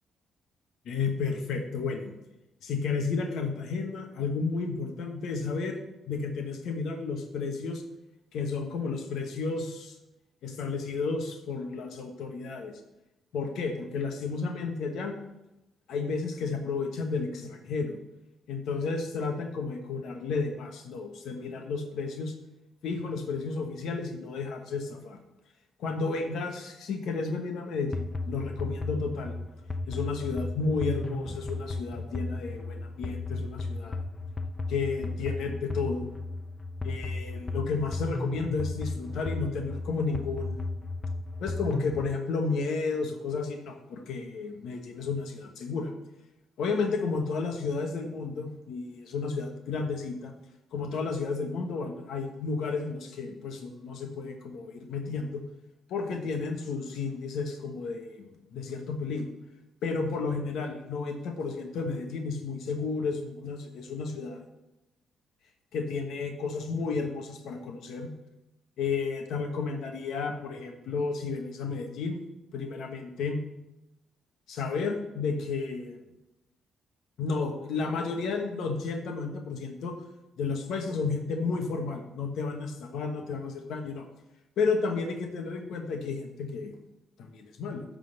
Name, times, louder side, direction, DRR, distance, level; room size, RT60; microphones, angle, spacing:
voice 1, 0.8-2.2 2.6-5.8 6.1-7.8 8.3-10.0 10.4-12.8 13.3-15.2 15.9-18.0 18.5-22.3 22.8-25.2 25.8-29.3 29.9-34.0 34.7-36.1 36.8-40.6 41.4-45.9 46.6-50.3 50.7-55.4 55.9-59.3 59.8-64.4 65.7-68.1 68.8-72.2 72.5-73.4 74.5-76.0 77.2-79.9 80.4-84.1 84.6-86.7 87.2-87.8, left 4 dB, 75° left, 5 dB, 1.2 m, -32 dB
sound 1, 27.9-42.1, left 2 dB, 25° left, 0.6 m, -35 dB
11.5 x 3.9 x 6.7 m, 0.94 s
cardioid pair, 90°, 0 cm